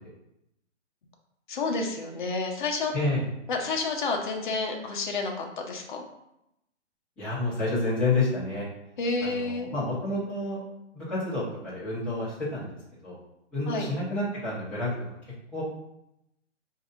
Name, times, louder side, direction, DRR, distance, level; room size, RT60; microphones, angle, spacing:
voice 1, 1.5-2.9 3.5-6.0 9.0-9.7 13.7-13.9, left 3 dB, 40° left, 2 dB, 0.8 m, -30 dB
voice 2, 2.9-3.2 7.2-8.7 9.2-10.6 10.9-12.7 13.0-13.1 13.5-14.9 15.5-15.6, left 2 dB, 5° left, -11 dB, 0.8 m, -29 dB
4.6 x 2.7 x 3.7 m, 0.84 s
hypercardioid pair, 155°, 36 cm